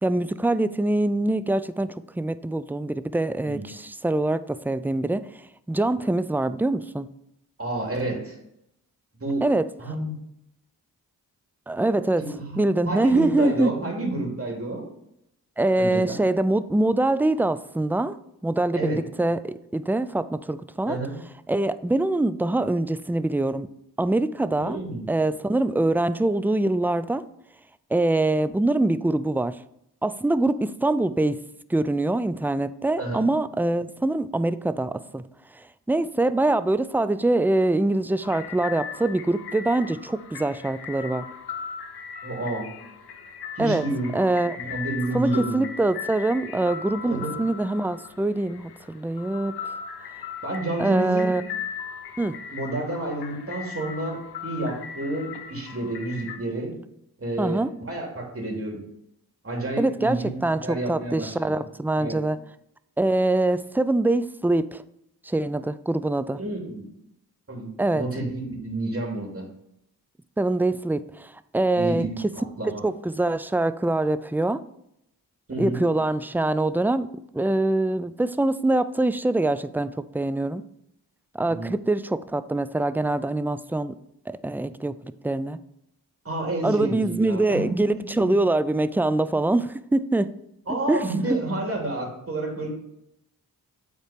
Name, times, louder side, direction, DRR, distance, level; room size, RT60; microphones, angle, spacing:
voice 1, 0.0-5.2 5.7-7.1 9.4-9.6 11.7-12.2 12.6-13.7 15.6-18.2 18.4-21.0 21.5-23.7 24.0-24.8 25.1-27.2 27.9-29.6 30.0-31.4 31.7-35.2 35.9-41.3 43.6-43.8 44.1-44.6 45.1-49.6 50.8-51.4 52.2-52.4 57.4-57.7 59.8-62.4 63.0-64.8 65.3-66.4 67.8-68.0 70.4-72.1 72.8-74.6 75.6-77.1 77.3-80.6 81.3-83.9 84.3-85.6 86.6-90.3 90.9-91.0 91.3-91.4, right 2 dB, 5° right, 14 dB, 0.4 m, -24 dB
voice 2, 7.6-8.4 9.2-9.4 9.8-10.1 12.2-14.8 15.8-16.2 18.7-19.0 20.9-21.1 24.6-25.1 33.0-33.2 42.2-42.7 43.6-44.1 44.6-45.7 47.1-47.3 50.4-51.3 52.5-56.7 57.2-58.8 59.4-60.3 60.6-61.6 62.0-62.2 66.3-66.8 67.5-69.4 71.8-72.8 75.5-75.8 81.5-81.7 86.2-88.3 90.7-92.7, right 2 dB, 35° right, -1 dB, 3.1 m, -30 dB
sound 1, 38.2-56.4, left 7 dB, 85° left, 0.8 m, -38 dB
8.4 x 4.5 x 5.1 m, 0.78 s
cardioid pair, 45°, 38 cm